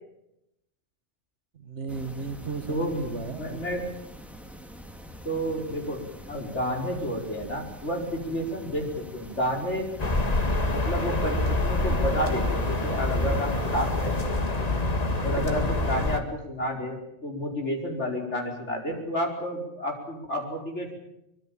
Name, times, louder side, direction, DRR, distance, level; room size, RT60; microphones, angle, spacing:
voice 1, 1.5-3.6, right 5 dB, 70° right, 10 dB, 1.9 m, -35 dB
sound 1, 1.9-14.2, equal, ahead, 2.0 m, -45 dB
voice 2, 2.7-3.0 3.3-3.9 5.2-6.0 6.3-9.9 10.5-14.8 15.2-21.0, equal, 70° left, 1 dB, 5.3 m, -31 dB
sound 2, 10.0-16.2, left 2 dB, 35° left, 1.8 m, -26 dB
24.0 x 22.5 x 7.2 m, 0.84 s
omnidirectional pair, 1.2 m